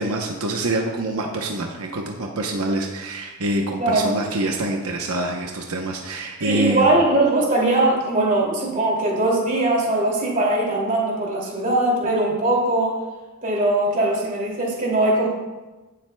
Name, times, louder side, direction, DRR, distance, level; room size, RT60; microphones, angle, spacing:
voice 1, 0.0-7.0, right 1 dB, 85° right, 1 dB, 0.9 m, -26 dB
voice 2, 3.8-4.1 6.4-13.0 13.4-15.3, right 2 dB, 35° right, -2 dB, 2.5 m, -20 dB
17.0 x 7.7 x 2.3 m, 1.2 s
head